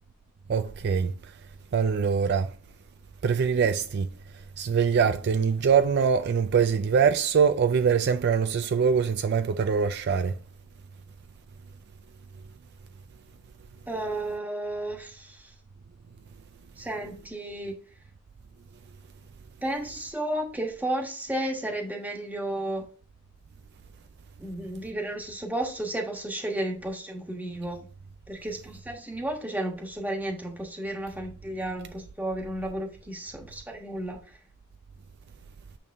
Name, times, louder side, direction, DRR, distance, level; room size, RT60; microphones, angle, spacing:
voice 1, 0.5-1.1 1.7-2.5 3.2-4.1 4.6-10.3, right 6 dB, 50° right, 0.3 m, -23 dB
voice 2, 13.9-15.5 16.8-17.7 19.6-22.9 24.4-27.9 28.3-34.2, right 1 dB, 10° right, 1.2 m, -33 dB
8.6 x 3.5 x 3.5 m
head